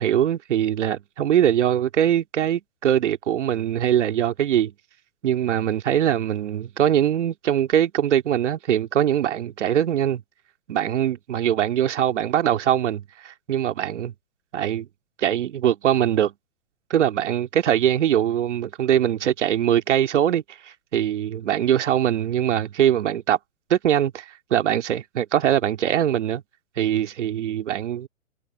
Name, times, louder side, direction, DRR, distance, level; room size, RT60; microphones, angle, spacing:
voice 1, 0.0-4.7 5.2-10.2 10.7-14.1 14.5-14.9 15.2-16.3 16.9-23.4 23.7-26.4 26.8-28.1, right 10 dB, 60° right, 2.5 m, -22 dB
figure-of-eight pair, 120°, 40 cm